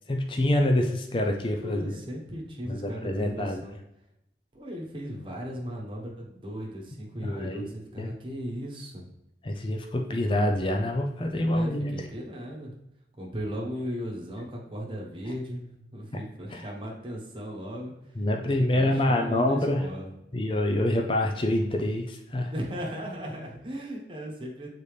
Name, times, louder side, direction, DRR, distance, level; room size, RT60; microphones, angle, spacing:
voice 1, 0.1-2.0 2.7-3.6 7.2-7.7 8.0-8.1 9.4-12.0 16.5-16.6 18.2-19.9 20.3-22.5, left 1 dB, 30° left, 3 dB, 0.5 m, -26 dB
voice 2, 1.6-3.8 4.5-9.1 11.4-12.7 13.2-20.1 22.5-24.7, equal, 30° right, -1 dB, 1.1 m, -37 dB
6.9 x 4.1 x 3.3 m, 0.83 s
head